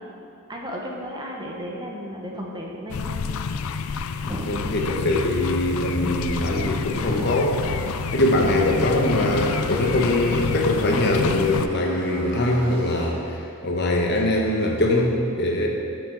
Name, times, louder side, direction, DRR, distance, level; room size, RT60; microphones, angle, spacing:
voice 1, 0.5-3.1 4.2-4.7, equal, 20° right, -1 dB, 1.0 m, -33 dB
sound 1, 2.9-11.7, left 5 dB, 70° left, 0.4 m, -28 dB
voice 2, 4.5-7.6 8.1-13.2 13.6-15.7, left 1 dB, 50° left, 0 dB, 1.1 m, -22 dB
sound 2, 6.9-13.6, right 1 dB, 80° right, 1.9 m, -41 dB
12.5 x 6.9 x 3.9 m, 2.7 s
head